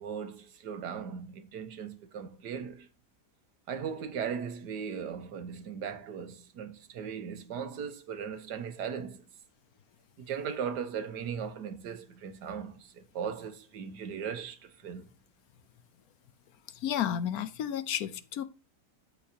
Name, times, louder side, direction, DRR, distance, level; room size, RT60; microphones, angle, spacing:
voice 1, 0.0-2.9 3.7-9.2 10.2-15.1, right 7 dB, 85° right, 1.6 m, -38 dB
voice 2, 16.7-18.4, left 10 dB, 70° left, 1.2 m, -32 dB
13.5 x 4.7 x 2.8 m
omnidirectional pair, 1.7 m